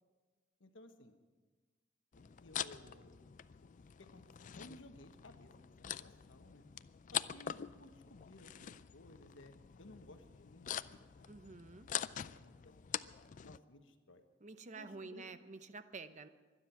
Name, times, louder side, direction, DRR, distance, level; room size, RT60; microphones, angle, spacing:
voice 1, 0.6-1.1 2.2-3.1 4.0-6.7 7.1-11.3 11.7-13.1 13.4-14.2 14.7-15.3, left 1 dB, 75° left, 6 dB, 1.3 m, -59 dB
sound 1, 2.1-13.6, left 10 dB, 40° left, 0.4 m, -45 dB
voice 2, 11.3-11.9 14.4-16.3, right 3 dB, 40° right, 11 dB, 0.8 m, -49 dB
24.5 x 10.0 x 5.9 m, 1.4 s
head